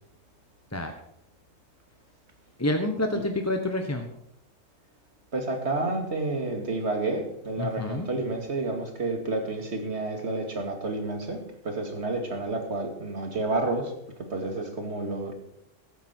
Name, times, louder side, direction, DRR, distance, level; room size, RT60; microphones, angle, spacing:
voice 1, 2.6-4.1 7.6-8.1, left 1 dB, 15° left, 5 dB, 1.0 m, -28 dB
voice 2, 5.3-13.9 14.3-15.3, right 2 dB, 55° right, 4 dB, 2.5 m, -30 dB
15.0 x 13.0 x 4.5 m, 0.78 s
omnidirectional pair, 1.3 m